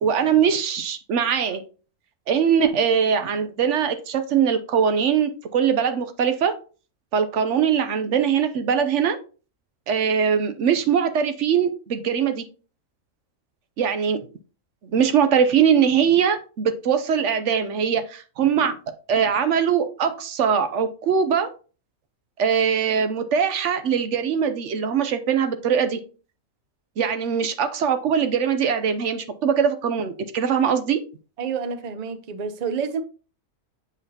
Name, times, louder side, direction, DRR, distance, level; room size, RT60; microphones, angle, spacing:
voice 1, 0.0-1.6 2.3-6.5 7.1-9.2 9.9-12.5 13.8-14.2 14.8-18.7 19.1-21.5 22.4-26.0 27.0-31.0, right 7 dB, 65° right, 0.9 m, -21 dB
voice 2, 31.4-33.0, right 6 dB, 45° right, 0.5 m, -28 dB
7.3 x 5.2 x 2.8 m
omnidirectional pair, 1.4 m